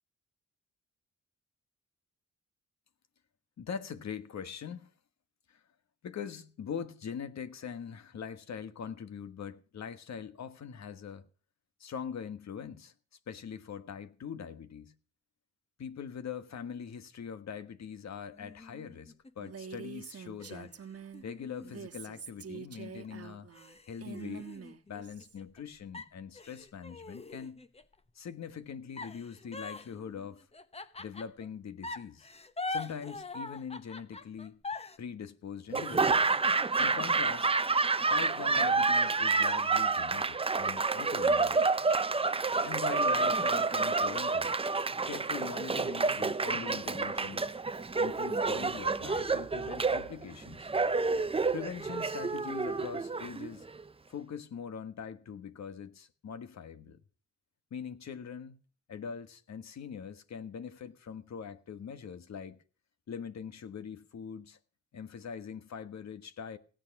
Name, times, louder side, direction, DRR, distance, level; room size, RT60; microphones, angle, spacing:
voice 1, 3.6-4.9 5.5-5.6 6.0-11.3 11.8-12.9 13.3-14.9 15.8-20.7 21.2-23.5 23.9-24.5 24.9-27.6 28.1-30.4 31.0-32.3 32.7-34.6 35.0-36.4 36.8-37.5 38.1-41.6 42.6-44.5 45.1-47.5 48.0-50.7 51.5-53.7 54.1-57.0 57.7-58.6 58.9-62.6 63.1-64.6 64.9-66.6, left 7 dB, 65° left, 1.4 m, -42 dB
sound 1, 18.3-19.7 20.4-22.6 23.0-23.1 23.5-25.6 25.9-27.9 29.0-31.5 31.8-35.0, left 3 dB, 20° left, 0.9 m, -43 dB
Female speech woman speaking, 19.4-21.2 21.6-25.4, right 7 dB, 55° right, 1.3 m, -46 dB
Laughter / Applause, 35.7-53.8, right 4 dB, 20° right, 0.6 m, -29 dB
17.0 x 9.0 x 5.9 m
cardioid pair, 100°, 30 cm